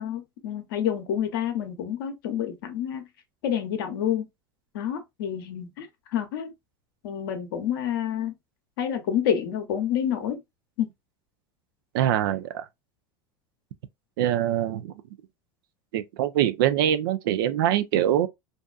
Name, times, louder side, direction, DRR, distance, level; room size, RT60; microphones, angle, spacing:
voice 1, 0.0-3.1 3.4-4.2 4.7-5.9 6.1-6.5 7.0-8.3 8.8-10.4 10.8-10.9, left 9 dB, 80° left, 0.7 m, -28 dB
voice 2, 11.9-12.6 14.2-14.9 15.9-18.3, right 11 dB, 80° right, 0.4 m, -24 dB
2.6 x 2.3 x 2.2 m
hypercardioid pair, 90°, 11 cm